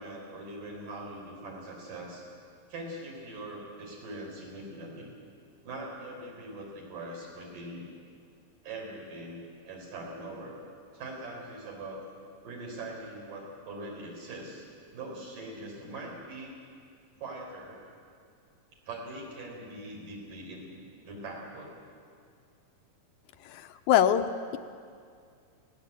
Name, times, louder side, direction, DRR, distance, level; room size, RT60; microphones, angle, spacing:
voice 1, 0.0-2.3 2.7-5.1 5.6-7.8 8.6-10.6 10.9-12.0 12.4-14.7 14.9-16.5 17.2-17.8 18.9-20.7 21.0-21.7, right 2 dB, 90° right, -1 dB, 6.0 m, -42 dB
voice 2, 23.5-24.6, left 9 dB, 80° left, 9 dB, 2.1 m, -25 dB
20.5 x 17.0 x 8.4 m, 2.2 s
omnidirectional pair, 3.7 m